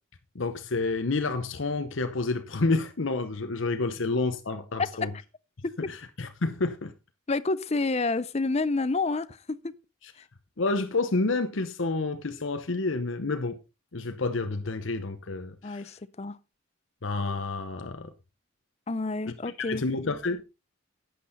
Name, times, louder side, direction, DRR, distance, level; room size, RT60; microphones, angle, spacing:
voice 1, 0.3-5.1 5.9-6.9 10.0-10.1 10.6-13.6 13.9-16.0 17.0-18.1 19.2-20.4, left 3 dB, 65° left, 0.9 m, -29 dB
voice 2, 4.8-5.1 7.3-9.8 10.2-10.3 15.6-16.4 18.9-19.8, left 3 dB, 30° left, 0.6 m, -29 dB
11.5 x 8.5 x 4.0 m
head